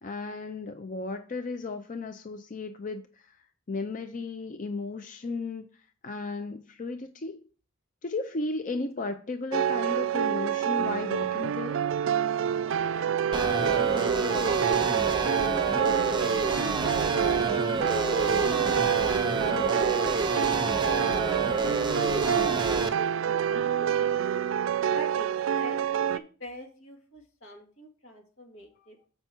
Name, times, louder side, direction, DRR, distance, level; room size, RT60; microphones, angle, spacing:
voice 1, 0.0-3.4 3.7-5.7 6.0-7.5 8.0-11.8, left 3 dB, 40° left, 7 dB, 0.5 m, -35 dB
sound 1, 9.5-26.2, right 9 dB, 70° right, 0.3 m, -27 dB
voice 2, 12.6-15.0 24.9-25.8 26.1-29.0, equal, 85° left, 1 dB, 2.2 m, -45 dB
sound 2, 13.3-22.9, right 3 dB, 25° right, 0.7 m, -29 dB
6.9 x 5.4 x 4.4 m, 0.39 s
head